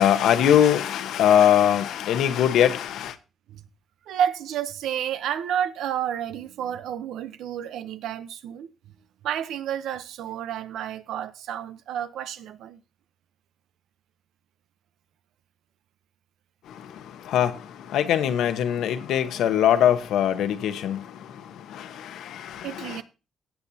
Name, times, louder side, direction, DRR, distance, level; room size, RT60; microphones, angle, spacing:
voice 1, 0.0-3.1 17.2-17.6 17.9-21.1 21.7-23.0, left 10 dB, 80° left, 1.1 m, -21 dB
voice 2, 4.1-8.7 9.2-12.8 22.6-23.0, right 9 dB, 80° right, 0.8 m, -30 dB
15.5 x 8.0 x 2.8 m
cardioid pair, 90°, 0 cm